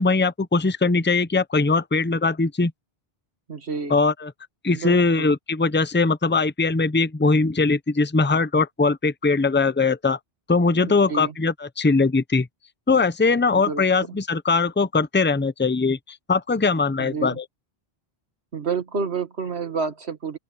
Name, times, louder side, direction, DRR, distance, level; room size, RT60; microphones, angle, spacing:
voice 1, 0.0-2.7 3.9-4.3 4.6-10.2 10.5-12.5 12.9-17.4, left 3 dB, 10° left, 0.6 m, -21 dB
voice 2, 3.5-4.0 4.7-5.3 10.7-11.3 13.5-14.2 17.0-17.4 18.5-20.4, right 5 dB, 85° right, 2.1 m, -30 dB
open air
omnidirectional pair, 1.1 m